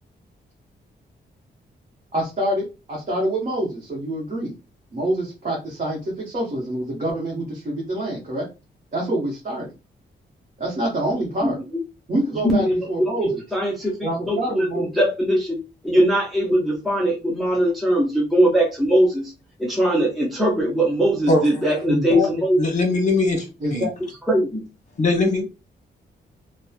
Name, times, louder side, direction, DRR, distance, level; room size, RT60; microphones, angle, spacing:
voice 1, 2.1-4.5 4.9-8.5 8.9-9.7 10.6-11.6 12.1-13.4 14.0-15.0 21.9-22.3 23.6-23.9, right 1 dB, 40° right, 0.9 m, -26 dB
voice 2, 12.4-15.6 15.8-19.3 19.6-22.6 24.3-24.7, equal, ahead, 0.5 m, -21 dB
voice 3, 22.6-23.4 23.7-23.8 25.0-25.4, left 2 dB, 40° left, 0.9 m, -20 dB
2.9 x 2.1 x 2.3 m
wide cardioid pair, 135°, 18 cm